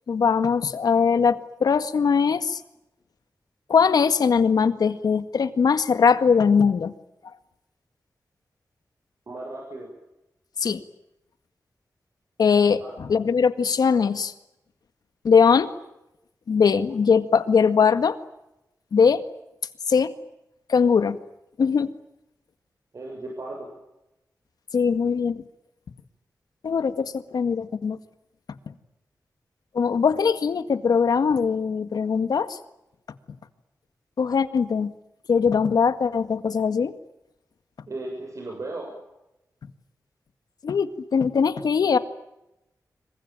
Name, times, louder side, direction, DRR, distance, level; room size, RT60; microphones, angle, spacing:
voice 1, 0.1-2.6 3.7-6.9 10.6-10.8 12.4-14.3 15.2-15.7 16.5-18.2 18.9-19.2 19.9-20.1 20.7-21.2 21.6-21.9 24.7-25.4 26.6-28.0 29.7-32.6 34.2-34.9 35.3-36.9 40.6-42.0, left 6 dB, 85° left, 11 dB, 1.8 m, -21 dB
voice 2, 9.3-9.9 12.8-12.9 22.9-23.7 37.9-38.9, right 2 dB, 55° right, 1 dB, 7.3 m, -35 dB
26.0 x 23.5 x 9.1 m, 0.89 s
wide cardioid pair, 105°, 7 cm